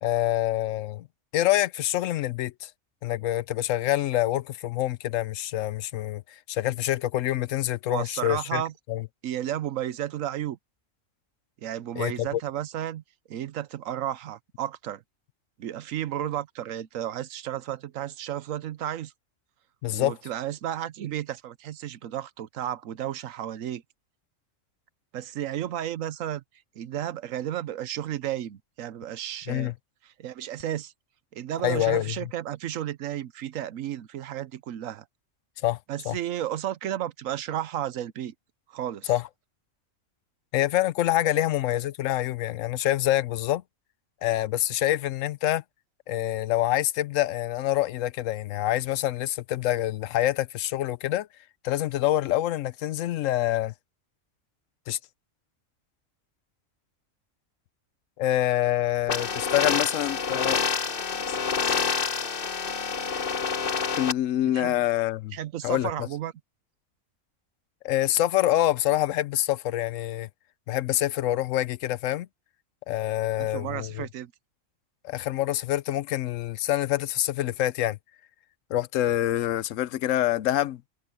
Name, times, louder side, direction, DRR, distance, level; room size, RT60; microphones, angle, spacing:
voice 1, 0.0-1.1 1.3-2.7 3.0-6.2 6.5-8.6 8.9-9.1 12.0-12.4 19.8-20.1 29.5-29.7 31.6-32.3 35.6-35.8 36.1-36.2 39.1-39.2 40.5-43.6 44.2-45.6 46.1-51.3 51.6-53.7 54.9-55.0 58.2-60.6 61.3-61.4 61.6-61.8 64.0-65.4 65.6-66.1 67.8-70.3 70.7-72.3 72.9-74.1 75.0-78.0 78.7-80.8, left 13 dB, 80° left, 0.9 m, -26 dB
voice 2, 7.9-8.7 9.2-10.6 11.6-13.0 13.3-15.0 15.6-19.1 19.9-23.8 25.1-26.4 26.8-29.7 30.2-30.9 31.3-35.0 35.9-38.3 38.7-39.1 64.5-64.8 65.3-66.3 73.4-74.3, right 11 dB, 85° right, 1.1 m, -33 dB
sound 1, 59.1-64.1, left 5 dB, 45° left, 1.3 m, -27 dB
omnidirectional pair, 1.4 m